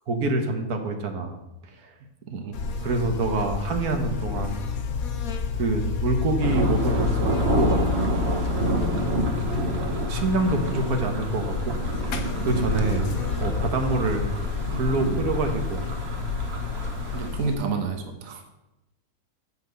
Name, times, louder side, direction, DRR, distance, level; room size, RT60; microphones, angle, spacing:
voice 1, 0.1-1.3 1.6-1.9 2.6-4.5 5.6-7.8 10.1-13.1 13.4-14.3 14.7-15.9, right 2 dB, 85° right, 4 dB, 1.6 m, -26 dB
voice 2, 2.3-2.6 17.1-18.4, right 4 dB, 65° right, 4 dB, 1.4 m, -29 dB
Buzz, 2.5-17.5, left 5 dB, 75° left, 1.3 m, -29 dB
sound 1, 6.4-17.3, right 2 dB, 45° right, 1.3 m, -29 dB
7.9 x 5.7 x 7.7 m, 0.95 s
omnidirectional pair, 1.5 m